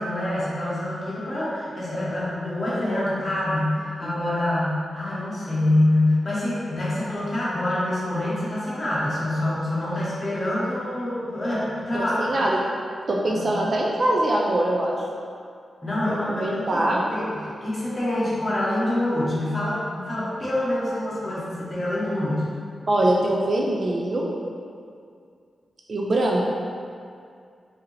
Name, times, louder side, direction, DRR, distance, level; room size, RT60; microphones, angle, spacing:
voice 1, 0.0-12.2 13.3-13.5 15.8-16.8 17.1-17.3 17.6-22.6, left 1 dB, 25° left, -9 dB, 1.0 m, -26 dB
voice 2, 11.9-12.6 13.1-15.0 16.1-17.1 22.9-24.3 25.9-26.4, right 1 dB, 40° right, -2 dB, 0.4 m, -23 dB
4.8 x 2.7 x 3.1 m, 2.3 s
wide cardioid pair, 175°, 0 cm